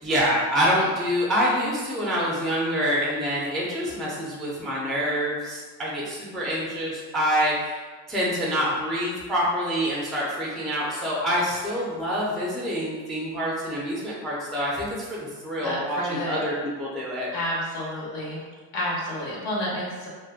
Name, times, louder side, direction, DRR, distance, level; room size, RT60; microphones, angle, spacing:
voice 1, 0.0-7.8 8.1-17.3, equal, ahead, -5 dB, 0.3 m, -26 dB
voice 2, 15.6-16.4 17.3-18.4 18.7-20.1, equal, 75° left, -4 dB, 0.9 m, -30 dB
2.6 x 2.1 x 2.3 m, 1.4 s
cardioid pair, 120°, 38 cm